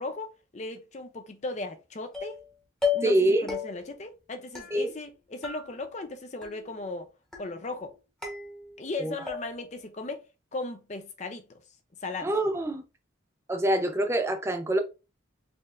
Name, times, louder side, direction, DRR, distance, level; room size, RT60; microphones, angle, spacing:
voice 1, 0.0-2.4 2.9-7.1 7.4-7.9 8.8-10.2 10.5-11.6 12.0-12.3, left 2 dB, 35° left, 0.5 m, -37 dB
sound 1, 2.1-2.5 2.8-3.2 3.5-4.0 4.6-5.2 5.4-6.1 6.4-6.9 7.3-7.8 8.2-8.9 9.3-9.8, left 6 dB, 5° left, 1.0 m, -35 dB
voice 2, 3.0-3.5 4.7-4.9 9.0-9.1 12.2-12.8 13.5-14.8, right 1 dB, 15° right, 0.4 m, -25 dB
4.3 x 3.1 x 2.5 m
head